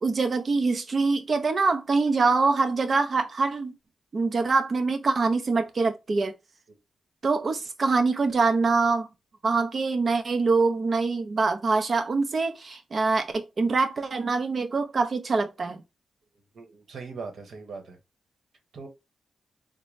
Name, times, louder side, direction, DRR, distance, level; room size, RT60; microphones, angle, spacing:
voice 1, 0.0-3.7 4.1-6.3 7.2-9.1 9.4-15.8, right 4 dB, 45° right, 0.7 m, -24 dB
voice 2, 16.5-18.0 18.7-18.9, right 4 dB, 70° right, 1.2 m, -40 dB
3.7 x 2.2 x 3.3 m
cardioid pair, 100°, 0 cm